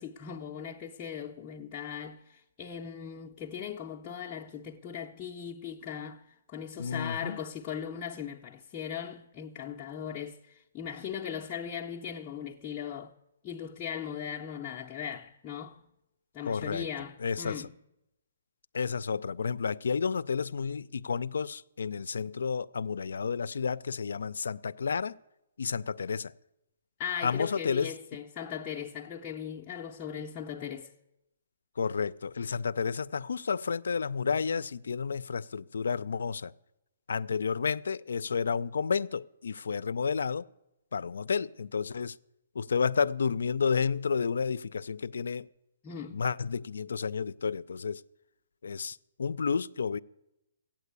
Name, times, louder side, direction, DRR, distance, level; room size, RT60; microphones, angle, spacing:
voice 1, 0.0-13.1 13.4-15.8 16.3-17.7 27.0-30.9 45.8-46.3, left 8 dB, 20° left, 0.5 m, -39 dB
voice 2, 6.8-7.4 16.5-16.9 17.2-17.7 18.7-25.2 25.6-26.3 27.2-27.9 31.8-36.5 37.1-40.5 40.9-42.2 42.5-45.5 46.1-48.0 48.6-50.0, left 5 dB, 80° left, 0.4 m, -31 dB
14.0 x 8.9 x 8.1 m
hypercardioid pair, 165°, 0 cm